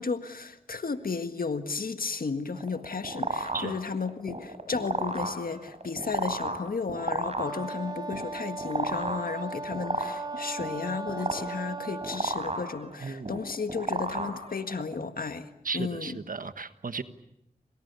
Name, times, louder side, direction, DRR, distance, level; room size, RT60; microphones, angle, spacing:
voice 1, 0.0-15.5 15.7-16.2, left 4 dB, 80° left, 9 dB, 1.7 m, -33 dB
sound 1, 2.5-14.9, right 2 dB, 45° right, 5.2 m, -34 dB
Wind instrument woodwind instrument, 7.4-12.3, right 2 dB, 30° right, 2.8 m, -37 dB
voice 2, 13.0-13.4 15.6-17.0, right 4 dB, 70° right, 11 dB, 1.5 m, -35 dB
29.5 x 26.0 x 6.9 m, 0.83 s
cardioid pair, 45°, 15 cm